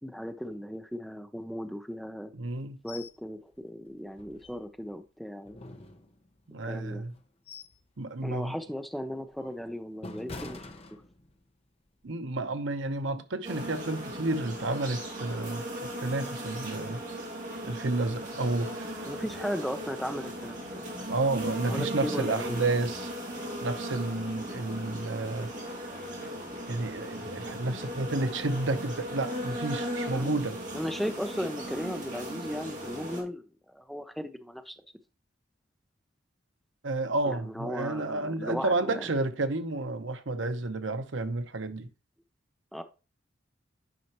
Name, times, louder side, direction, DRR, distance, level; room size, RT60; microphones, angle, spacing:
voice 1, 0.0-2.3 2.8-5.6 6.6-7.0 8.2-10.6 19.1-20.9 21.7-22.6 24.9-25.0 30.1-30.4 30.7-34.8 37.2-39.1 42.7-42.8, equal, ahead, 0.6 m, -36 dB
voice 2, 2.3-2.8 6.5-7.1 8.0-8.6 12.0-15.7 16.0-17.0 17.6-19.1 21.1-23.1 23.6-25.5 26.7-30.6 36.8-41.9, right 2 dB, 85° right, 0.9 m, -31 dB
sound 1, 2.9-3.2 3.5-3.6 4.1-4.9 5.4-6.5 7.0-7.9 8.2-8.5 9.0-11.5 11.9-12.1, left 2 dB, 30° left, 0.8 m, -46 dB
sound 2, 13.4-33.2, equal, 40° right, 2.7 m, -37 dB
9.3 x 5.7 x 3.0 m
head